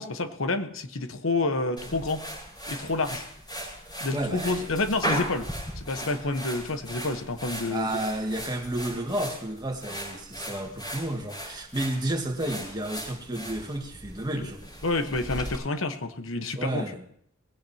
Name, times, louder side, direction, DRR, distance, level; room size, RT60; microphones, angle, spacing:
voice 1, 0.0-2.2 2.7-3.2 4.0-5.5 5.8-7.9 14.3-14.5 14.8-16.9, left 2 dB, 80° left, 8 dB, 1.2 m, -29 dB
sound 1, 1.8-15.6, equal, 25° left, 5.4 m, -37 dB
voice 2, 4.1-4.7 7.7-14.6 16.6-17.0, right 1 dB, 20° right, 2 dB, 2.1 m, -31 dB
20.0 x 17.0 x 2.9 m, 0.67 s
head